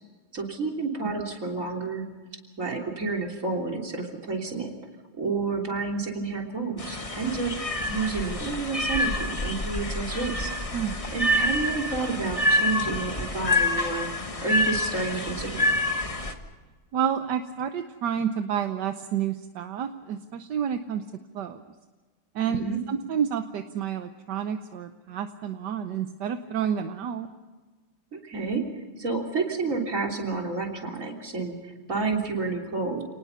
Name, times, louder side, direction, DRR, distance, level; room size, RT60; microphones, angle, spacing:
voice 1, 0.3-2.1 2.6-4.7 5.2-7.5 7.9-10.5 11.1-14.1 14.4-15.6 22.4-22.8 28.1-28.6 29.0-33.0, right 4 dB, 35° right, 1 dB, 3.6 m, -30 dB
sound 1, 6.8-16.3, left 1 dB, 20° left, 1.2 m, -27 dB
voice 2, 16.9-21.0 21.3-21.6 22.3-27.3, right 8 dB, 60° right, 8 dB, 1.3 m, -29 dB
29.5 x 19.0 x 5.7 m, 1.3 s
omnidirectional pair, 2.4 m